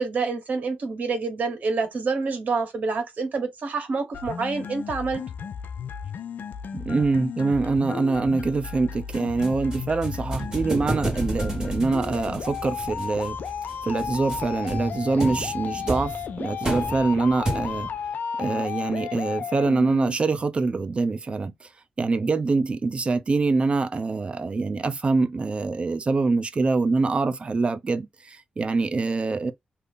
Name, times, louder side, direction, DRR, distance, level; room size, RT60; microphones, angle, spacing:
voice 1, 0.0-5.2, right 4 dB, 60° right, 1.5 m, -27 dB
sound 1, 4.1-20.2, left 7 dB, 80° left, 0.4 m, -34 dB
voice 2, 6.7-13.4 13.8-17.9 18.4-21.7 22.0-29.5, right 3 dB, 40° right, 0.6 m, -24 dB
sound 2, 9.1-18.0, right 1 dB, 20° right, 1.8 m, -32 dB
2.7 x 2.6 x 3.5 m
cardioid pair, 100°, 3 cm